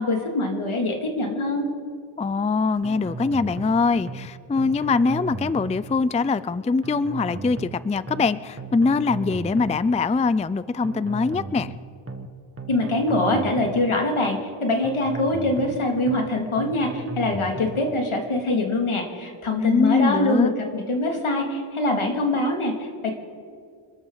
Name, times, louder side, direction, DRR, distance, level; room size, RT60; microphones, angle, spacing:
voice 1, 0.0-1.7 12.7-23.1, left 2 dB, 80° left, 2 dB, 2.6 m, -24 dB
voice 2, 2.2-11.7 19.6-20.5, left 4 dB, 15° left, 16 dB, 0.3 m, -23 dB
sound 1, 2.8-3.8 4.1-4.3 4.6-5.8 6.8-7.8 8.1-8.3 8.6-9.8 10.8-11.8 12.1-12.3 12.6-13.8 14.8-15.8 16.1-16.3 16.6-17.8, right 3 dB, 25° right, 1.4 m, -35 dB
27.0 x 13.0 x 4.0 m, 2.2 s
wide cardioid pair, 100°, 49 cm